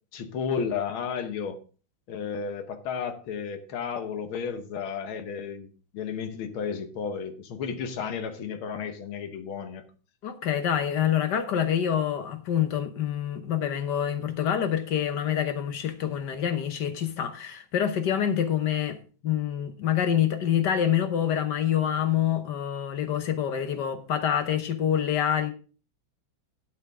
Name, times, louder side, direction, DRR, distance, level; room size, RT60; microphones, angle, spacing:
voice 1, 0.1-1.6 2.1-9.8, left 6 dB, 90° left, 1.9 m, -33 dB
voice 2, 10.2-19.0 19.2-25.5, left 9 dB, 60° left, 1.5 m, -26 dB
12.0 x 8.1 x 3.5 m
omnidirectional pair, 2.2 m